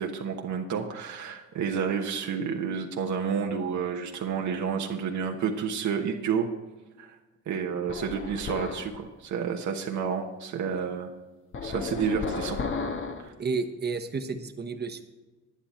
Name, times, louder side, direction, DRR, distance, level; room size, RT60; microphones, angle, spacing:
voice 1, 0.0-6.5 7.0-7.2 7.5-11.1 11.6-12.6 13.2-13.3, right 6 dB, 70° right, 2 dB, 1.2 m, -30 dB
sound 1, 7.9-9.0 11.5-13.3, left 4 dB, 45° left, 1.2 m, -33 dB
voice 2, 13.4-15.0, right 4 dB, 35° right, 7 dB, 1.1 m, -31 dB
10.5 x 9.9 x 4.3 m, 1.2 s
cardioid pair, 90°, 30 cm